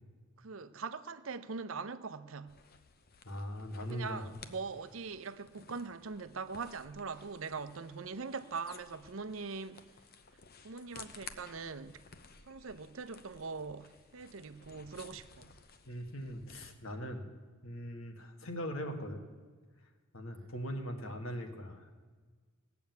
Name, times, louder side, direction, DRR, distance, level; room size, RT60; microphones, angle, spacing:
voice 1, 0.4-2.5 3.9-9.8 10.6-12.0 12.5-15.5, right 4 dB, 75° right, 0.7 m, -42 dB
sound 1, 2.5-16.7, left 5 dB, 50° left, 0.8 m, -56 dB
voice 2, 3.2-4.3 15.9-17.3 17.6-19.2 20.1-21.9, equal, 75° left, 1.8 m, -40 dB
17.5 x 7.0 x 9.4 m
head